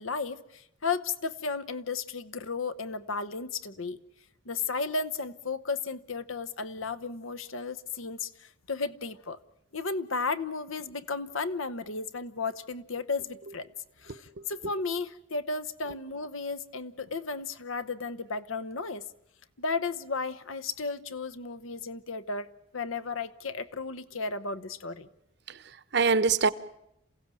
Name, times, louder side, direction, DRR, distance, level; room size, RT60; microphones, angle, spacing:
voice 1, 0.0-4.0 4.4-9.4 9.7-13.7 14.0-19.1 19.6-25.1, left 4 dB, 85° left, 1.0 m, -34 dB
voice 2, 25.5-26.5, right 4 dB, 55° right, 0.9 m, -25 dB
28.0 x 16.0 x 9.0 m
head